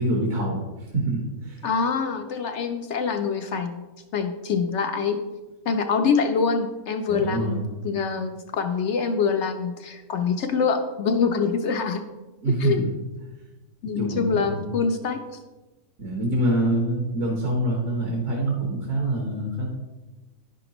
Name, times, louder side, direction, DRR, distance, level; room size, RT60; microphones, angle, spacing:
voice 1, 0.0-1.6 7.1-7.6 12.4-12.9 14.0-14.7 16.0-19.7, right 1 dB, 55° right, -1 dB, 1.6 m, -25 dB
voice 2, 1.6-3.8 4.1-5.2 5.7-7.6 7.8-12.0 12.6-12.8 13.8-15.2, left 5 dB, 65° left, 6 dB, 0.7 m, -25 dB
10.0 x 5.9 x 3.0 m, 1.1 s
omnidirectional pair, 1.6 m